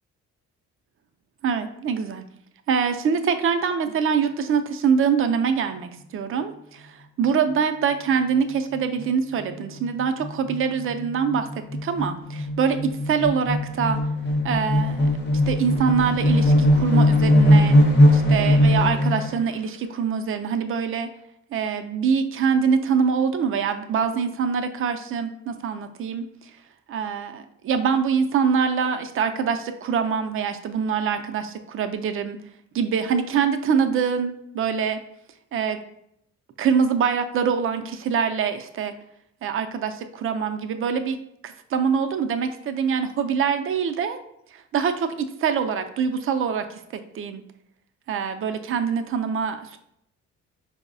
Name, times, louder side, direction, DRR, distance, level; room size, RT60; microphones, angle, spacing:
voice 1, 1.4-2.3 2.7-14.0 14.4-17.8 18.1-21.1 21.5-26.5 26.9-32.4 32.7-35.0 35.5-35.8 36.6-38.9 39.4-41.2 41.4-44.2 44.5-47.4 48.1-49.8, right 6 dB, 45° right, 8 dB, 0.4 m, -24 dB
sound 1, 8.7-9.1 9.4-9.5 9.8-19.5, left 1 dB, 35° left, 0.7 m, -20 dB
4.4 x 2.0 x 2.6 m, 0.75 s
cardioid pair, 90°, 30 cm